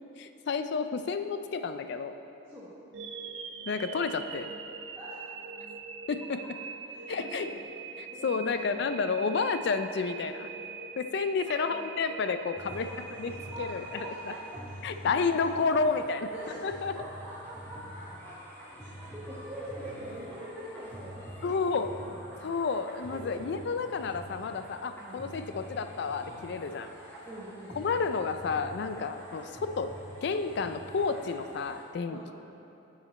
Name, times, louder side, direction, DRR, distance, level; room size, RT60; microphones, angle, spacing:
voice 1, 0.2-2.1 3.7-4.5 6.1-6.4 7.1-7.5 8.0-10.5 11.0-12.9 13.2-13.3 13.6-14.3 14.8-16.3 16.6-16.9 21.4-22.0 22.4-26.9 27.8-32.2, left 4 dB, 60° left, 9 dB, 0.4 m, -31 dB
sound 1, 2.9-15.0, right 6 dB, 65° right, 0.5 m, -43 dB
voice 2, 6.9-7.8 8.1-8.9 11.5-11.6 12.9-13.0 13.4-15.1 16.3-18.4 18.8-22.2 23.1-23.5 25.0-25.2 27.2-27.8 32.1-32.3, right 1 dB, 10° right, -11 dB, 1.2 m, -44 dB
sound 2, 12.6-31.8, equal, 10° left, 1.5 m, -46 dB
8.8 x 6.4 x 4.2 m, 2.9 s
head